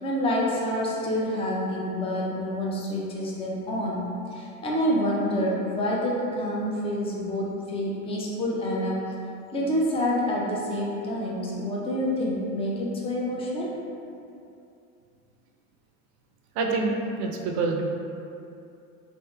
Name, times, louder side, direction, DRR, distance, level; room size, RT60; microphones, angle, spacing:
voice 1, 0.0-9.1 9.5-13.8, equal, 15° left, -3 dB, 0.4 m, -27 dB
voice 2, 16.6-17.8, right 3 dB, 45° right, 1 dB, 0.5 m, -26 dB
3.5 x 2.5 x 2.2 m, 2.6 s
hypercardioid pair, 100°, 41 cm